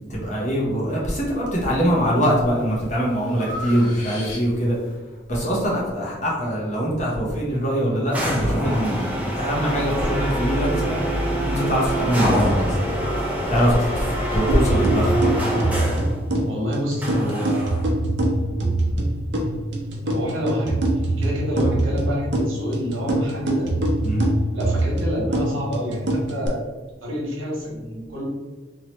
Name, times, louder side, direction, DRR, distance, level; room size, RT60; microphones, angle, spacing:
voice 1, 0.0-4.7 5.3-11.0 11.4-12.8 13.5-15.1 24.0-24.3, equal, 35° left, -4 dB, 0.9 m, -22 dB
Breathing, 1.6-2.1 2.6-4.8, left 1 dB, 75° left, 1.0 m, -36 dB
sound 1, 8.1-16.2 17.0-17.9, equal, 10° right, 0.6 m, -25 dB
sound 2, 14.5-26.5, right 1 dB, 60° right, 0.6 m, -24 dB
voice 2, 16.4-17.8 20.0-23.7 24.5-26.7 27.0-28.2, equal, 80° right, -3 dB, 1.1 m, -28 dB
3.0 x 2.8 x 2.9 m, 1.2 s
head